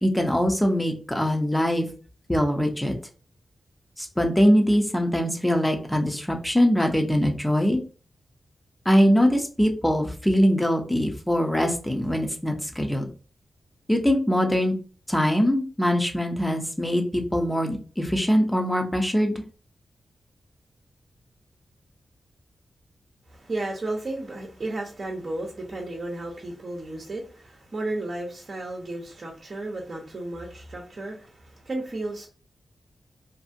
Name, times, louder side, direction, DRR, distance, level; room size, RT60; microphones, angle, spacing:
voice 1, 0.0-1.9 2.3-2.9 4.0-7.8 8.9-13.0 13.9-14.7 15.1-19.4, equal, 10° left, 0.7 m, -22 dB
voice 2, 23.3-32.3, right 2 dB, 50° right, 0.8 m, -33 dB
2.6 x 2.6 x 2.5 m
cardioid pair, 65°, 0 cm